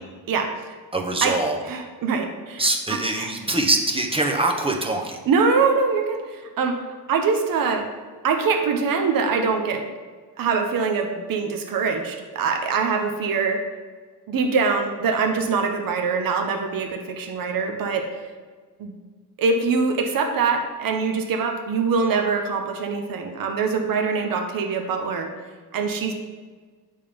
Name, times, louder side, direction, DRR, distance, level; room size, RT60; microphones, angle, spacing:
voice 1, 0.9-1.6 2.6-5.2, right 2 dB, 15° right, 3 dB, 0.8 m, -23 dB
voice 2, 1.6-3.3 5.3-7.9 8.2-9.8 10.4-13.6 14.3-18.2 18.8-18.9 19.4-25.3 25.7-26.1, right 5 dB, 55° right, 4 dB, 0.9 m, -23 dB
8.8 x 3.6 x 5.1 m, 1.5 s
cardioid pair, 125°, 40 cm